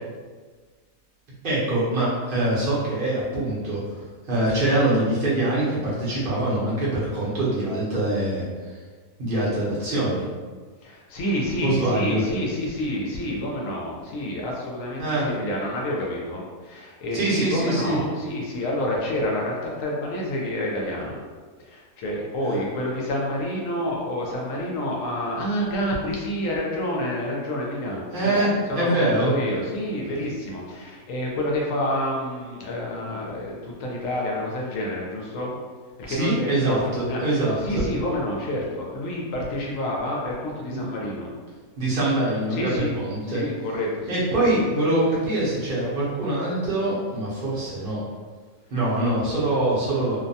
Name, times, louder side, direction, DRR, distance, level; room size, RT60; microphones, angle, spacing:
voice 1, 1.4-8.8 9.2-10.2 11.6-12.2 15.0-15.3 17.1-18.0 22.5-22.6 28.1-29.3 36.1-37.8 40.7-40.8 41.8-43.4 44.1-48.0 48.7-50.2, right 1 dB, 50° right, -8 dB, 0.7 m, -24 dB
voice 2, 10.8-21.2 21.6-35.6 36.0-36.8 37.1-41.3 42.5-42.9 43.3-44.2, left 1 dB, 70° left, -2 dB, 0.9 m, -28 dB
2.6 x 2.2 x 2.6 m, 1.5 s
omnidirectional pair, 1.6 m